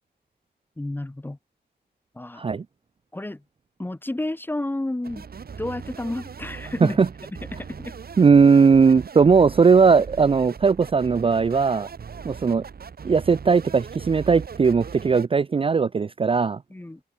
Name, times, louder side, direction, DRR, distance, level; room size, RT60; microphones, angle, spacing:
voice 1, 0.8-1.4 2.1-2.4 3.1-3.4 3.8-5.3 5.6-7.0 7.3-8.0 16.7-17.0, left 1 dB, 10° left, 0.8 m, -31 dB
sound 1, 5.0-15.3, right 6 dB, 60° right, 2.2 m, -39 dB
voice 2, 8.2-11.9 12.2-12.6 13.0-16.6, right 5 dB, 30° right, 0.4 m, -18 dB
wide cardioid pair, 130°, 18 cm